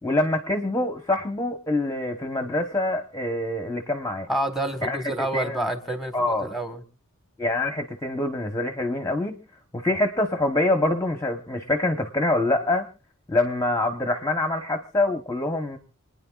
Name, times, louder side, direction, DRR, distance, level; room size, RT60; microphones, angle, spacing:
voice 1, 0.0-4.3 4.8-5.6 6.1-6.5 7.4-9.3 9.7-12.9 13.3-15.8, left 2 dB, 15° left, 5 dB, 1.0 m, -25 dB
voice 2, 4.3-6.8, right 1 dB, ahead, 8 dB, 1.5 m, -28 dB
29.0 x 9.8 x 2.4 m, 0.32 s
head